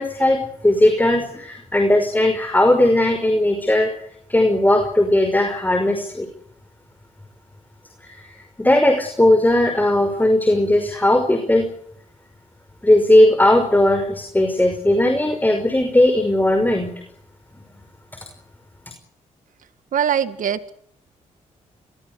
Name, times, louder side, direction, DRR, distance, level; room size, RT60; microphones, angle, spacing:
voice 1, 0.0-3.9 4.3-6.3 8.1-8.3 8.6-11.7 12.8-16.9, left 1 dB, 15° left, 6 dB, 5.5 m, -17 dB
voice 2, 19.9-20.7, right 8 dB, 70° right, 13 dB, 1.9 m, -22 dB
27.0 x 21.5 x 8.3 m, 0.66 s
cardioid pair, 65°, 14 cm